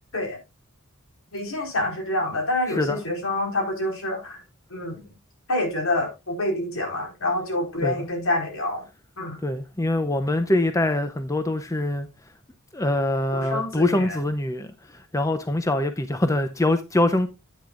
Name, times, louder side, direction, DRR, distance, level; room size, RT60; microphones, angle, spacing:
voice 1, 1.3-4.4 4.7-5.0 5.5-8.8 9.2-9.4 13.3-14.2, left 1 dB, 70° left, 4.5 m, -27 dB
voice 2, 2.7-3.0 7.8-7.9 9.4-12.1 12.7-17.3, left 1 dB, 15° left, 0.7 m, -24 dB
10.5 x 9.5 x 2.5 m
head